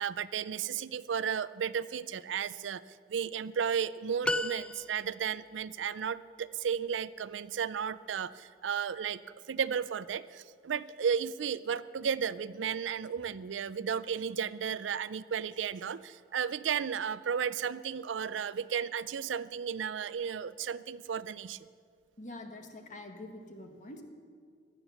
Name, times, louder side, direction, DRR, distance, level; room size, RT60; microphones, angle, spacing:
voice 1, 0.0-2.8 3.1-9.2 9.5-21.6, right 7 dB, 75° right, 17 dB, 0.4 m, -34 dB
sound 1, 4.2-5.4, left 2 dB, 5° left, 0.3 m, -34 dB
voice 2, 22.2-24.0, left 1 dB, 45° left, 5 dB, 1.6 m, -45 dB
16.0 x 11.5 x 7.0 m, 2.1 s
head